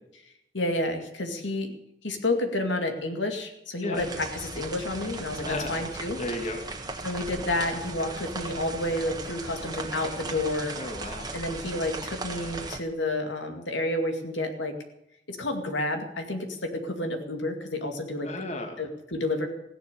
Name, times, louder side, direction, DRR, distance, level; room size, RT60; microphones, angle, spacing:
voice 1, 0.5-1.7 2.0-6.2 7.0-10.8 11.3-14.7 15.3-18.3 18.8-19.5, left 1 dB, 75° left, 5 dB, 2.3 m, -30 dB
sound 1, 3.9-12.8, right 3 dB, 20° right, 1.5 m, -37 dB
voice 2, 5.4-5.8 6.2-6.6 10.8-11.3 18.2-18.8, left 2 dB, 35° left, 4 dB, 2.2 m, -33 dB
16.5 x 11.0 x 6.8 m, 0.81 s
head